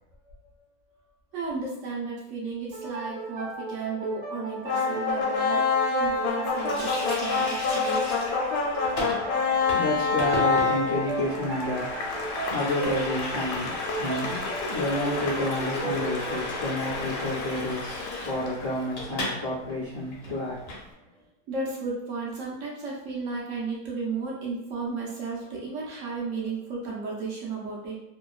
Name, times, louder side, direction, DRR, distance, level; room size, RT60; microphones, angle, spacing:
voice 1, 1.3-5.6 5.9-8.1 21.5-28.0, right 4 dB, 65° right, -4 dB, 0.9 m, -34 dB
sound 1, 2.7-18.1, right 4 dB, 80° right, 1.4 m, -36 dB
sound 2, 4.6-18.8, left 4 dB, 90° left, 1.2 m, -28 dB
Water tap faucet, 6.6-19.4 19.7-19.8 20.1-20.8, left 2 dB, 60° left, 0.7 m, -37 dB
voice 2, 9.2-20.8, left 1 dB, 20° right, -13 dB, 1.0 m, -30 dB
2.9 x 2.2 x 2.3 m, 0.85 s
omnidirectional pair, 1.7 m